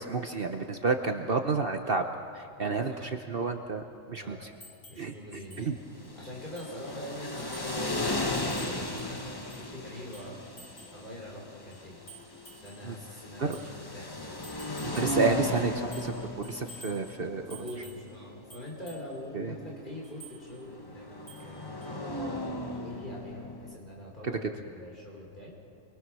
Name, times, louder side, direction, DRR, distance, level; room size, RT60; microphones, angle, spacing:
voice 1, 0.0-2.0 2.3-4.5 5.0-5.1 5.6-5.8 12.8-13.0 13.4-13.6 14.9-17.6 19.3-19.5 24.2-24.5, right 4 dB, 50° right, 5 dB, 1.1 m, -30 dB
voice 2, 2.6-3.1 4.1-4.5 4.9-5.7 6.2-10.4 10.9-12.0 12.6-14.8 17.5-25.5, left 1 dB, 35° left, -3 dB, 4.1 m, -44 dB
sound 1, 4.6-5.1 5.5-5.7 6.0-6.1 6.6-6.8 7.4-7.9 8.3-9.7 10.1-11.0 11.7-12.9 13.5-13.7 14.4-15.2 15.5-16.2 16.4-17.0 17.5-18.1 18.5-19.1 20.0-20.4 21.3-21.5 21.8-21.9, right 2 dB, 70° left, 4.4 m, -50 dB
sound 2, 5.9-23.8, left 1 dB, 20° left, 1.1 m, -37 dB
28.0 x 22.5 x 6.2 m, 2.5 s
omnidirectional pair, 1.3 m